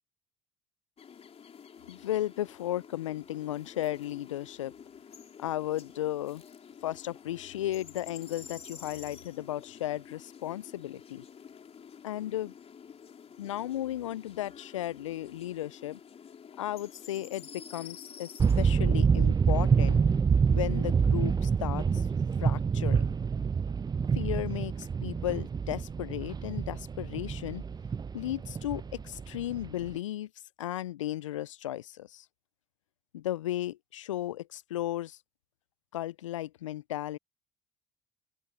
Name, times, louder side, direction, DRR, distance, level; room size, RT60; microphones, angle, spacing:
sound 1, 1.0-18.7, left 7 dB, 40° left, 3.6 m, -50 dB
voice 1, 1.9-4.7 5.4-6.4 6.8-11.2 12.0-12.5 13.4-16.0 16.6-18.3 18.6-20.0 20.5-22.1 22.4-23.2 24.1-27.6 28.1-30.3 30.6-32.2 33.1-35.2 35.9-37.2, left 13 dB, 85° left, 0.4 m, -35 dB
sound 2, 18.4-29.9, right 6 dB, 25° right, 0.7 m, -27 dB
open air
hypercardioid pair, 60°, 16 cm